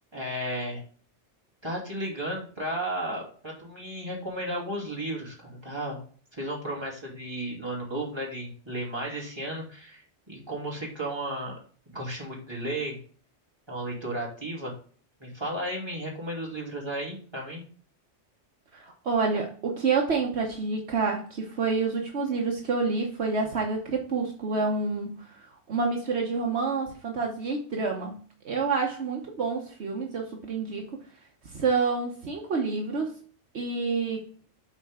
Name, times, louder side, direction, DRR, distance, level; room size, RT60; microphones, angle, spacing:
voice 1, 0.1-0.8 1.6-6.0 6.3-11.5 11.9-13.0 13.7-14.7 15.2-17.6, right 1 dB, 20° right, -3 dB, 2.9 m, -34 dB
voice 2, 18.7-28.2 28.4-30.9 31.4-33.1 33.5-34.2, right 4 dB, 65° right, 1 dB, 1.3 m, -28 dB
11.5 x 4.3 x 3.7 m, 0.42 s
omnidirectional pair, 1.2 m